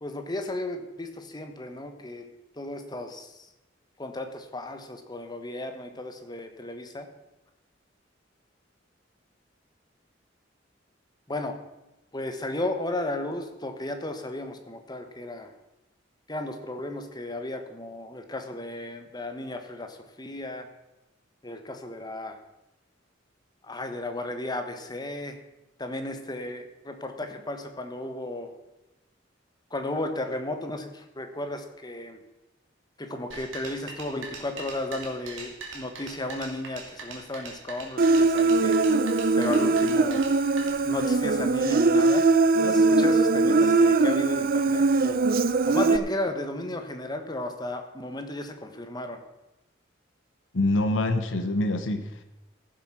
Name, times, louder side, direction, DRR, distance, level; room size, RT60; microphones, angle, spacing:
voice 1, 0.0-2.3 2.6-3.3 4.0-7.1 11.3-11.6 12.1-15.5 16.3-20.7 21.4-22.4 23.6-25.4 25.8-28.5 29.7-32.2 33.0-38.8 39.4-40.2 40.8-42.3 42.6-45.3 45.7-49.2, left 1 dB, 20° left, 6 dB, 1.2 m, -34 dB
sound 1, 33.3-40.7, right 4 dB, 80° right, 2.4 m, -42 dB
Human voice, 38.0-46.0, right 3 dB, 50° right, 0.6 m, -21 dB
voice 2, 50.5-52.2, left 2 dB, 75° left, 8 dB, 1.0 m, -25 dB
15.0 x 7.5 x 5.9 m, 0.98 s
head